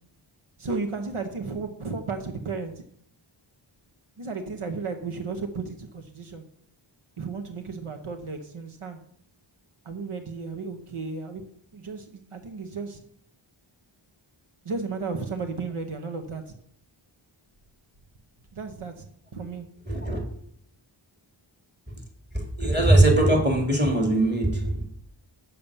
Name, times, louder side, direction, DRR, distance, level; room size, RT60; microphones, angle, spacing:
voice 1, 0.6-2.7 4.2-6.4 7.2-9.0 9.8-11.4 11.7-13.0 14.6-16.4 18.5-19.1 19.3-19.7, right 4 dB, 80° right, 6 dB, 1.1 m, -34 dB
voice 2, 19.9-20.3 22.3-24.8, right 1 dB, 20° right, 1 dB, 3.4 m, -21 dB
8.7 x 7.0 x 6.9 m, 0.67 s
wide cardioid pair, 45°, 50 cm